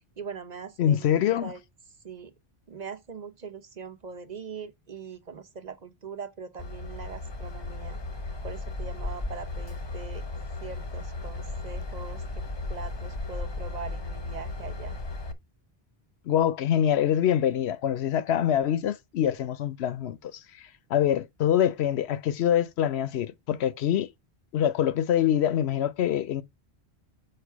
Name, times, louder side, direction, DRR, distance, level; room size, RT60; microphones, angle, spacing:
voice 1, 0.2-1.1 1.4-1.6 2.0-2.3 2.7-8.0 8.4-10.2 10.6-12.2 12.7-15.0, right 5 dB, 45° right, 0.9 m, -41 dB
voice 2, 0.8-1.5 16.3-20.4 20.9-24.1 24.5-26.4, left 10 dB, 85° left, 0.9 m, -25 dB
Train / Engine, 6.6-15.3, left 2 dB, 30° left, 0.6 m, -35 dB
6.8 x 4.6 x 4.6 m
omnidirectional pair, 1.1 m